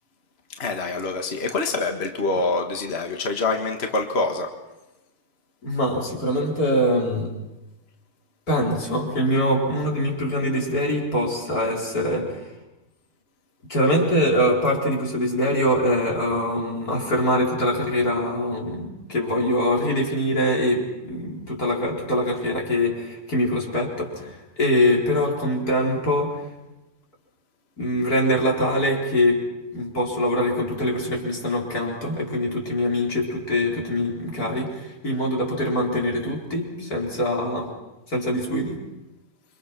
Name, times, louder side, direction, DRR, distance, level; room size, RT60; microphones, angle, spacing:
voice 1, 0.6-4.5, left 3 dB, 45° left, 4 dB, 1.9 m, -25 dB
voice 2, 5.6-7.3 8.5-12.5 13.7-26.4 27.8-29.4 29.7-37.7 38.1-38.8, equal, 85° left, -1 dB, 5.2 m, -23 dB
28.5 x 24.5 x 6.1 m, 1.0 s
omnidirectional pair, 1.6 m